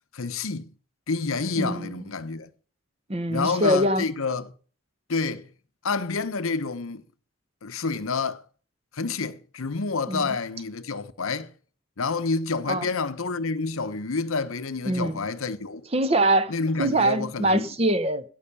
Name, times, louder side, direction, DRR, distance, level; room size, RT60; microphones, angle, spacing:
voice 1, 0.1-0.7 1.1-2.5 3.3-4.5 5.1-5.5 5.8-7.0 7.6-8.4 8.9-11.5 12.0-15.8 16.5-17.6, left 4 dB, 85° left, 0.9 m, -28 dB
voice 2, 1.6-2.0 3.1-4.0 10.1-10.2 12.7-12.9 14.9-15.2 15.9-16.5 16.8-18.2, right 1 dB, 30° right, 0.9 m, -23 dB
17.0 x 5.7 x 6.8 m
head